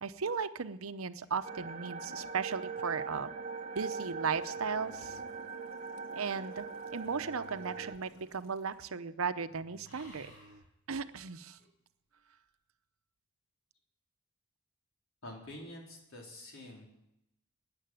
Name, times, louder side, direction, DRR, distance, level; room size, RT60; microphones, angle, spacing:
voice 1, 0.0-3.3 3.7-5.2 6.1-10.3 10.9-11.6, right 5 dB, 80° right, 12 dB, 0.8 m, -36 dB
sound 1, 1.4-8.0, right 5 dB, 35° right, 1.1 m, -41 dB
sound 2, 3.5-9.0 9.2-9.5 9.8-10.6 11.6-11.7, left 1 dB, 45° left, 4.4 m, -62 dB
sound 3, 4.3-11.2, right 3 dB, 60° right, 1.2 m, -62 dB
voice 2, 15.2-16.9, left 1 dB, 75° left, -1 dB, 4.1 m, -47 dB
13.5 x 9.9 x 9.3 m, 0.85 s
head